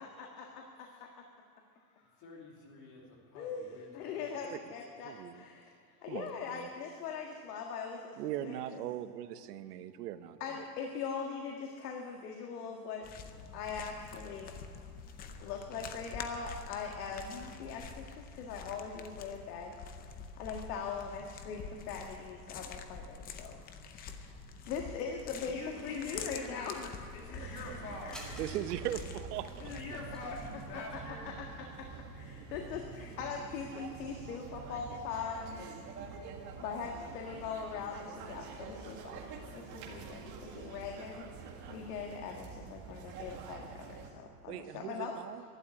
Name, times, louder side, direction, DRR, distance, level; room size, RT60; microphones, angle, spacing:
voice 1, 0.0-1.1 3.3-5.7 6.0-8.8 10.4-13.0 13.5-14.5 15.4-19.8 20.4-23.6 23.9-24.3 24.7-27.0 27.3-28.4 30.1-30.2 30.7-31.3 31.6-31.9 32.1-35.7 36.6-39.2 39.5-41.3 41.7-45.2, left 6 dB, 75° left, 1 dB, 1.8 m, -41 dB
voice 2, 2.2-4.6 25.5-26.8 27.1-28.2 28.9-29.0 29.6-31.4, left 2 dB, 40° left, -1 dB, 2.7 m, -46 dB
voice 3, 5.0-5.4 6.1-6.3 8.2-10.6 28.4-29.5 44.5-45.4, right 12 dB, 90° right, 12 dB, 1.1 m, -39 dB
sound 1, 13.0-30.7, left 5 dB, 20° left, 0.6 m, -47 dB
sound 2, 27.3-44.1, right 5 dB, 40° right, 1.9 m, -47 dB
sound 3, 28.1-30.2 31.4-32.1 32.4-32.5 33.5-33.6 34.0-35.1, equal, ahead, 2.0 m, -54 dB
12.0 x 11.5 x 9.6 m, 2.4 s
supercardioid pair, 160°, 46 cm